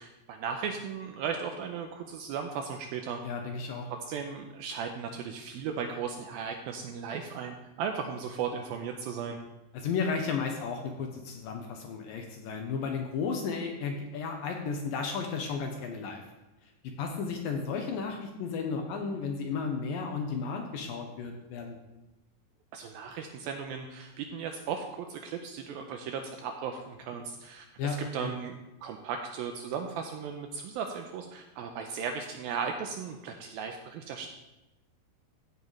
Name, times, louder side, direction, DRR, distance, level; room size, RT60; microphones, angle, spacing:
voice 1, 0.0-3.2 4.0-9.4 22.7-34.3, right 6 dB, 90° right, 4 dB, 2.1 m, -36 dB
voice 2, 3.2-3.9 9.7-16.2 17.0-21.8 27.8-28.3, left 5 dB, 75° left, 3 dB, 2.2 m, -33 dB
15.0 x 8.0 x 3.2 m, 0.99 s
omnidirectional pair, 4.8 m